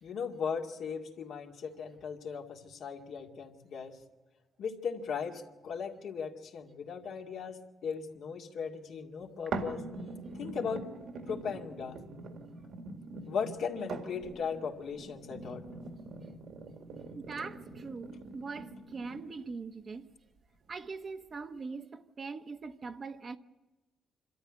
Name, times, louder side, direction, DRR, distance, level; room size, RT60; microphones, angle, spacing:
voice 1, 0.0-4.0 4.6-9.8 10.4-10.9 11.3-12.0 13.3-15.6, left 6 dB, 70° left, 2.1 m, -37 dB
sound 1, 9.5-19.5 20.1-20.2, right 3 dB, 70° right, 2.1 m, -43 dB
voice 2, 17.1-20.1 20.7-23.4, right 4 dB, 40° right, 1.1 m, -42 dB
25.5 x 13.0 x 9.7 m
cardioid pair, 90°, 0 cm